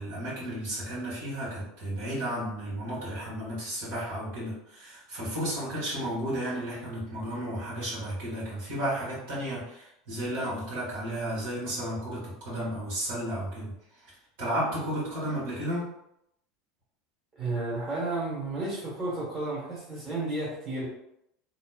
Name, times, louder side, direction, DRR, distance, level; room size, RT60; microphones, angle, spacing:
voice 1, 0.0-13.7 14.4-15.9, right 1 dB, 65° right, -8 dB, 1.4 m, -33 dB
voice 2, 17.3-20.9, right 2 dB, 30° right, -7 dB, 1.3 m, -32 dB
3.0 x 2.1 x 2.2 m, 0.79 s
figure-of-eight pair, 75°, 0 cm